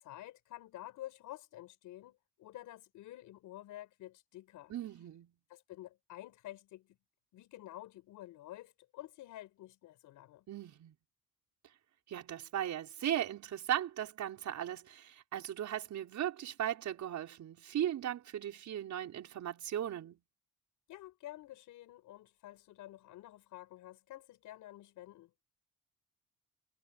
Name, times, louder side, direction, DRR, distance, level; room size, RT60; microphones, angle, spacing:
voice 1, 0.0-4.7 5.5-7.0 7.3-10.5 20.9-25.3, left 14 dB, 90° left, 6.3 m, -50 dB
voice 2, 4.7-5.3 10.5-11.0 12.1-20.2, right 11 dB, 70° right, 5.3 m, -37 dB
cardioid pair, 90°, 30 cm